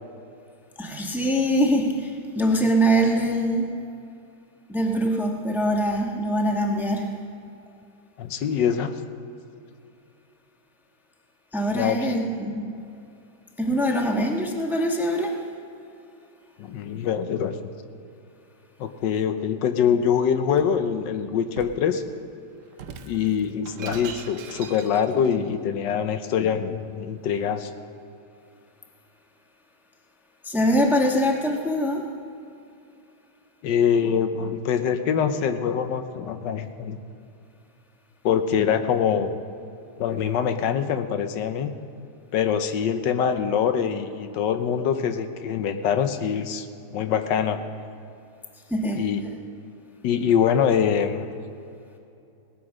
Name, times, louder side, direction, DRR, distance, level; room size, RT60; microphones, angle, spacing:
voice 1, 0.8-3.7 4.7-7.1 11.5-12.7 13.6-15.4 30.4-32.0 48.7-49.0, equal, ahead, 1 dB, 1.0 m, -23 dB
voice 2, 8.2-8.9 11.7-12.0 16.6-17.5 18.8-22.0 23.0-27.7 33.6-37.0 38.2-39.4 40.0-41.7 42.3-46.7 46.9-47.7 49.0-49.2 50.0-51.3, left 8 dB, 90° left, 8 dB, 1.5 m, -24 dB
Shatter, 20.0-20.8 21.6-21.9 22.7-25.4, right 6 dB, 60° right, 0.9 m, -41 dB
18.5 x 9.1 x 6.2 m, 2.6 s
omnidirectional pair, 1.9 m